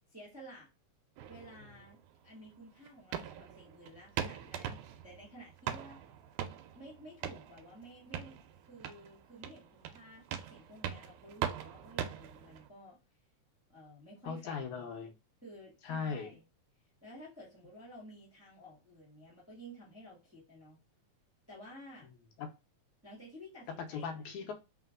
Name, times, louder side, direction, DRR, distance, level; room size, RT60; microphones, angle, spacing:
voice 1, 0.1-0.7 1.3-6.0 6.7-8.4 8.6-13.0 13.7-14.7 15.4-16.4 17.0-20.8 21.5-22.1 23.0-24.4, equal, 10° right, -6 dB, 1.1 m, -53 dB
sound 1, 1.2-12.7, right 9 dB, 90° right, 2.0 m, -42 dB
voice 2, 14.2-15.1 15.8-16.3 22.1-22.5 23.9-24.5, left 5 dB, 80° left, 5 dB, 2.1 m, -39 dB
4.1 x 3.8 x 2.3 m, 0.27 s
omnidirectional pair, 3.4 m